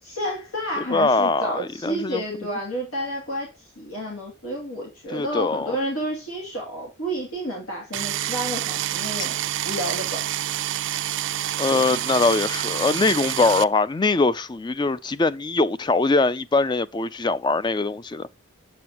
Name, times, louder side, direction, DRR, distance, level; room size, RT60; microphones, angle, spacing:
voice 1, 0.0-9.4 9.7-10.2 11.7-12.0, equal, 80° left, 2.7 m, -30 dB
voice 2, 0.9-2.5 5.1-5.8 11.6-18.3, left 3 dB, 20° left, 0.3 m, -22 dB
sound 1, 7.9-13.6, right 12 dB, 55° right, 0.3 m, -27 dB
7.7 x 7.5 x 2.9 m
head